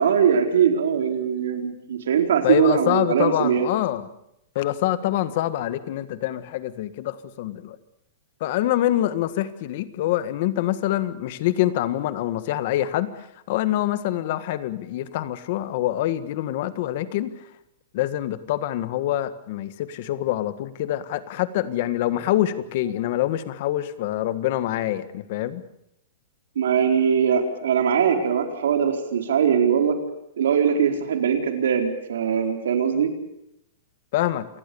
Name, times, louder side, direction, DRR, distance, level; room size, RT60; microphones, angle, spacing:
voice 1, 0.0-3.7 26.6-30.0 30.4-33.1, right 7 dB, 85° right, 5 dB, 4.3 m, -21 dB
voice 2, 2.4-4.1 4.5-7.8 8.4-17.3 17.9-25.6 34.1-34.5, left 13 dB, 40° left, 13 dB, 1.6 m, -25 dB
28.0 x 19.5 x 7.1 m, 0.80 s
supercardioid pair, 175°, 0 cm